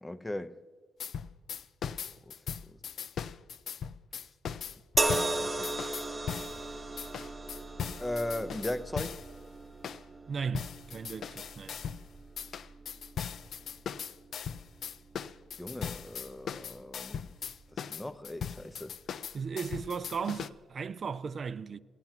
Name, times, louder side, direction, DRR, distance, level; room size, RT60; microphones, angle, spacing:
voice 1, 0.0-0.6 5.4-5.7 8.0-9.2 15.6-17.3 17.9-18.9, left 1 dB, 15° left, 0.5 m, -37 dB
sound 1, 1.0-6.6 7.0-9.3 9.8-10.0 10.5-12.1 12.4-20.5, left 7 dB, 65° left, 0.4 m, -39 dB
sound 2, 5.0-18.3 19.2-19.4, right 2 dB, 25° right, 0.9 m, -38 dB
voice 2, 10.3-11.8 19.3-21.8, right 6 dB, 50° right, 0.4 m, -36 dB
14.5 x 11.0 x 5.8 m
supercardioid pair, 65°, 0 cm